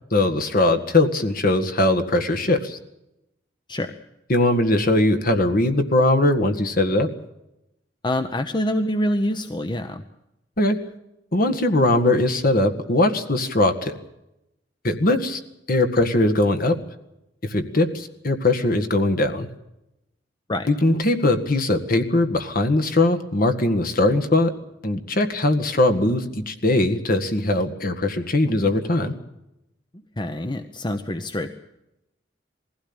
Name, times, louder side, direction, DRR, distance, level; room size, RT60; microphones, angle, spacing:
voice 1, 0.1-2.8 4.3-7.1 10.6-10.8 11.3-14.0 14.8-15.4 15.7-16.8 17.5-19.5 20.7-24.5 24.8-29.1, left 2 dB, 50° left, 7 dB, 1.8 m, -20 dB
voice 2, 8.0-10.0 20.5-20.7 30.2-31.5, left 1 dB, 25° left, 8 dB, 0.9 m, -25 dB
21.0 x 16.0 x 8.8 m, 0.90 s
head